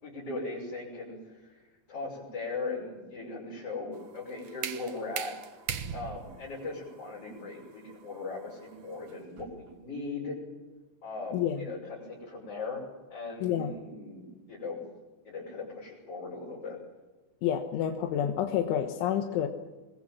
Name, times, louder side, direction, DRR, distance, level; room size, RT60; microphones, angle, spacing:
voice 1, 0.0-1.6 1.9-5.3 5.9-10.4 11.0-12.8 13.1-14.8 15.2-16.8, left 3 dB, 30° left, -5 dB, 7.1 m, -39 dB
sound 1, 3.9-9.7, right 8 dB, 85° right, 1.6 m, -41 dB
voice 2, 11.3-11.7 13.4-13.7 17.4-19.5, left 10 dB, 80° left, 4 dB, 3.7 m, -29 dB
25.5 x 21.5 x 7.5 m, 1.2 s
omnidirectional pair, 5.4 m